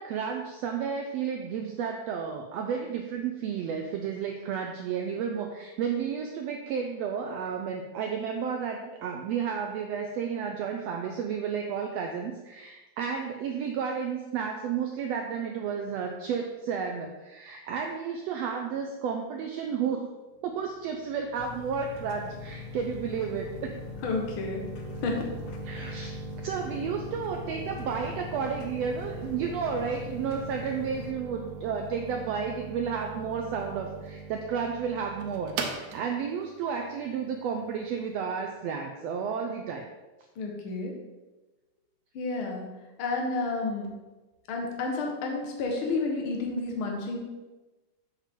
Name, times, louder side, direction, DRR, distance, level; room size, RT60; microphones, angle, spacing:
voice 1, 0.0-20.1 20.4-23.8 25.6-26.1 26.4-39.9, right 6 dB, 90° right, 3 dB, 1.4 m, -32 dB
sound 1, 20.5-38.1, right 5 dB, 75° right, 2.1 m, -41 dB
sound 2, 21.4-31.1, left 14 dB, 75° left, 1.4 m, -43 dB
voice 2, 24.0-25.2 40.3-41.0 42.1-43.9 44.5-47.2, left 3 dB, 55° left, 1 dB, 1.7 m, -31 dB
7.3 x 7.3 x 3.7 m, 1.1 s
omnidirectional pair, 3.6 m